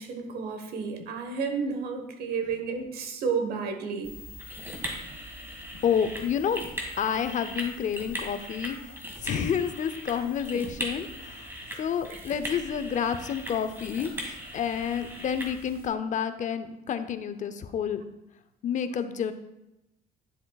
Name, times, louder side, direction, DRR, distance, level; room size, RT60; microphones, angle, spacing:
voice 1, 0.0-4.1 8.9-9.0 10.5-10.6 12.1-12.2, right 5 dB, 65° right, 5 dB, 1.3 m, -32 dB
sound 1, 4.0-15.9, equal, 15° right, 1.8 m, -39 dB
voice 2, 5.8-6.6 7.0-8.9 9.2-11.5 11.8-14.1 14.5-18.0 18.6-19.3, left 8 dB, 45° left, 11 dB, 0.6 m, -29 dB
10.0 x 7.4 x 2.4 m, 0.92 s
cardioid pair, 110°, 17 cm